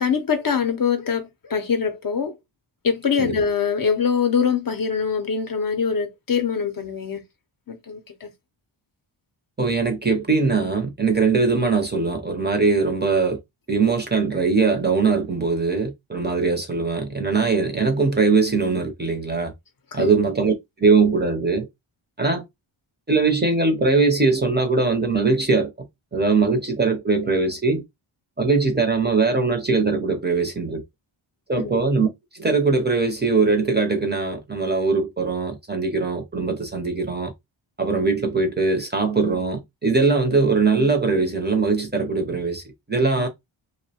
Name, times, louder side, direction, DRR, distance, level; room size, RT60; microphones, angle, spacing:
voice 1, 0.0-2.3 2.8-7.2 7.7-8.3 19.9-20.1 31.6-31.8, left 6 dB, 45° left, 0.5 m, -23 dB
voice 2, 9.6-13.4 13.7-19.5 19.9-21.7 22.2-22.4 23.1-25.7 26.1-27.8 28.4-30.8 31.5-32.1 32.3-37.3 37.8-42.6 42.9-43.3, right 4 dB, 20° right, 0.5 m, -21 dB
2.5 x 2.0 x 2.7 m
wide cardioid pair, 90°, 49 cm